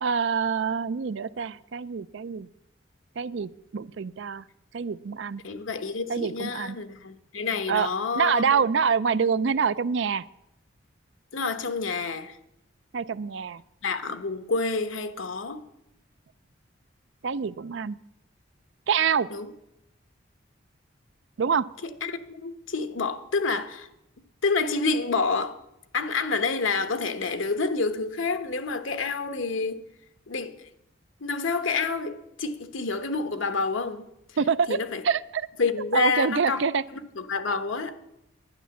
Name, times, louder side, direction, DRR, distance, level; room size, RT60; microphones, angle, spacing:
voice 1, 0.0-2.5 3.2-4.4 4.7-5.4 6.1-6.8 7.7-10.2 12.9-13.6 17.2-18.0 18.9-19.3 21.4-21.7 34.4-35.5 35.9-36.8, right 6 dB, 65° right, 0.4 m, -26 dB
voice 2, 5.4-8.6 11.3-12.4 13.8-15.6 19.3-19.5 22.0-23.9 24.4-25.6 25.9-29.8 30.3-30.5 31.2-34.0 34.7-35.0 35.6-36.6 36.9-37.9, left 4 dB, 75° left, 1.1 m, -28 dB
11.5 x 10.0 x 7.0 m
head